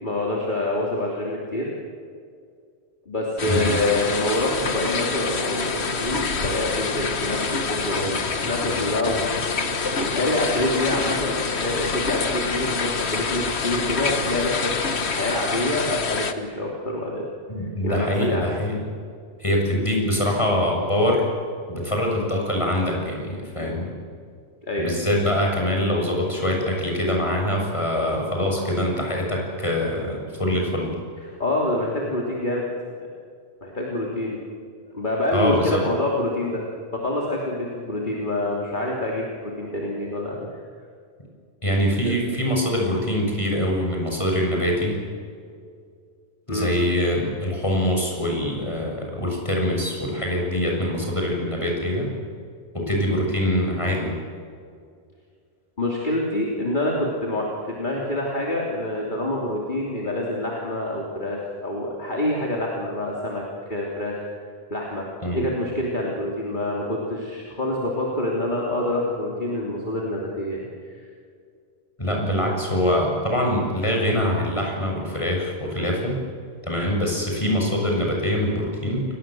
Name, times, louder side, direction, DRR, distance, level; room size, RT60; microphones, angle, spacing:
voice 1, 0.0-1.7 3.1-9.6 10.0-17.2 17.6-18.5 24.6-24.9 31.2-32.7 33.6-34.4 34.9-36.6 36.9-40.6 42.0-42.1 46.5-46.7 55.8-63.4 63.7-64.2 64.7-65.1 65.3-71.0, left 1 dB, 50° left, -2 dB, 3.4 m, -26 dB
sound 1, 3.4-16.3, left 4 dB, 80° left, 1.7 m, -26 dB
voice 2, 17.5-18.8 19.4-21.3 21.7-23.9 24.8-30.9 35.3-35.8 41.6-45.0 46.5-52.1 52.7-54.1 65.2-65.5 72.0-76.2 76.6-79.0, left 1 dB, 30° left, -1 dB, 7.1 m, -24 dB
29.5 x 19.0 x 7.8 m, 2.3 s
omnidirectional pair, 1.1 m